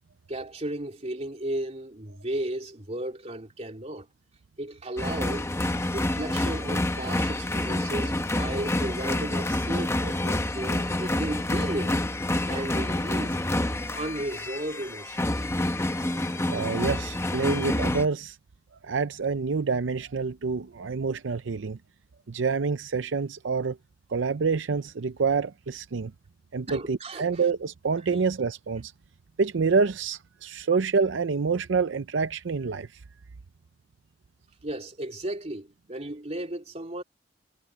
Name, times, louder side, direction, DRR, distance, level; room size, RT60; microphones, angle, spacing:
voice 1, 0.3-4.1 4.6-5.5 5.9-12.0 12.4-13.5 13.8-15.5 26.7-27.4 28.1-28.2 34.6-37.0, right 1 dB, 35° right, 3.0 m, -35 dB
sound 1, 5.0-18.1, left 1 dB, 15° left, 0.9 m, -28 dB
voice 2, 16.5-18.4 18.8-21.8 22.3-23.8 24.1-26.1 26.5-28.9 29.4-32.9, right 5 dB, 80° right, 0.6 m, -27 dB
head